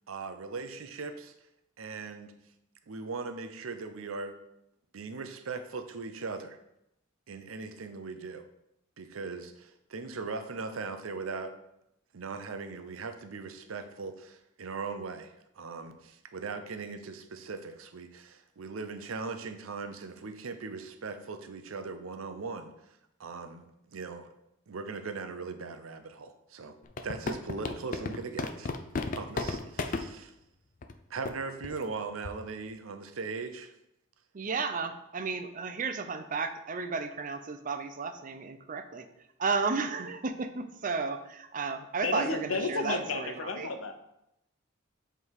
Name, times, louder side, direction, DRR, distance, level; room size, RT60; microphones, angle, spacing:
voice 1, 0.1-1.3 1.8-2.3 2.9-4.4 4.9-6.6 7.3-8.4 9.0-11.5 12.1-22.7 23.2-24.3 24.7-26.8 27.0-28.7 29.1-30.3 31.1-33.7, right 4 dB, 85° right, 8 dB, 0.6 m, -39 dB
sound 1, 26.8-30.1 30.8-30.9 31.3-31.4 31.6-31.9 32.3-32.5, left 3 dB, 40° left, 0.4 m, -33 dB
voice 2, 34.3-39.1 39.4-43.7, right 4 dB, 40° right, 8 dB, 0.5 m, -33 dB
voice 3, 42.0-43.9, left 3 dB, 85° left, 6 dB, 0.8 m, -32 dB
7.5 x 3.4 x 4.7 m, 0.83 s
head